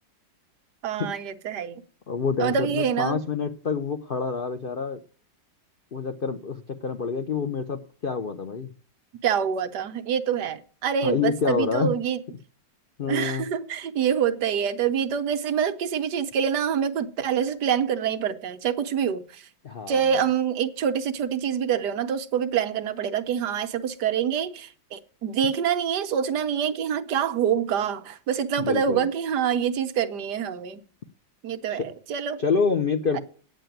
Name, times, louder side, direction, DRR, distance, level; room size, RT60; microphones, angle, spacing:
voice 1, 0.8-1.8 2.4-3.2 9.2-12.2 13.1-19.5 19.9-30.8 31.4-32.4 33.1-33.2, right 8 dB, 70° right, 1.4 m, -26 dB
voice 2, 2.1-5.0 5.9-8.7 11.0-11.9 13.0-13.4 19.6-20.0 28.6-29.0 31.7-31.9 32.4-33.2, left 5 dB, 70° left, 0.5 m, -27 dB
8.9 x 7.6 x 9.1 m
omnidirectional pair, 2.0 m